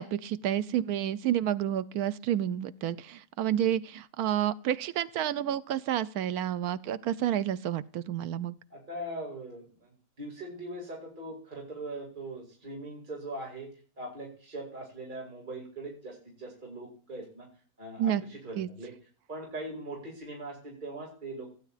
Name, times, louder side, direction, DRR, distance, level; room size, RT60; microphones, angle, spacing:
voice 1, 0.0-8.6 18.0-18.2 18.6-18.7, right 11 dB, 85° right, 15 dB, 1.2 m, -30 dB
voice 2, 8.7-13.7 14.0-17.5 17.8-18.9 19.3-21.5, right 1 dB, 30° right, -1 dB, 2.5 m, -41 dB
16.0 x 9.0 x 2.4 m, 0.43 s
omnidirectional pair, 1.6 m